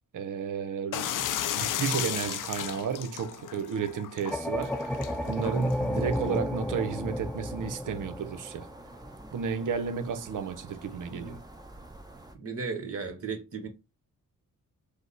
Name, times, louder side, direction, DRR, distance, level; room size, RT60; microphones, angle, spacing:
voice 1, 0.1-1.3 1.6-5.0 5.3-8.7 9.3-11.4, right 6 dB, 70° right, 0.8 m, -32 dB
sound 1, 0.9-6.4, left 11 dB, 70° left, 0.5 m, -35 dB
sound 2, 4.3-9.3, left 1 dB, 5° left, 0.4 m, -32 dB
sound 3, 4.4-12.4, right 1 dB, 10° right, 0.9 m, -49 dB
voice 2, 10.9-11.4 12.3-13.7, right 5 dB, 45° right, 1.3 m, -36 dB
5.0 x 2.1 x 4.0 m
cardioid pair, 85°, 32 cm